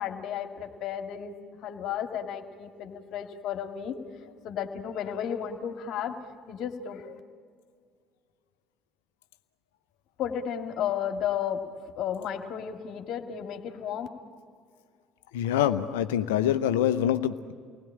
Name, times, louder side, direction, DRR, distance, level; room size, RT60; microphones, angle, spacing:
voice 1, 0.0-1.3 1.6-4.0 4.4-6.2 6.5-7.2 10.2-11.7 12.0-14.1, left 9 dB, 55° left, 5 dB, 2.1 m, -33 dB
voice 2, 15.3-17.5, left 10 dB, 70° left, 11 dB, 0.8 m, -25 dB
29.5 x 20.5 x 8.7 m, 2.1 s
figure-of-eight pair, 60°, 0 cm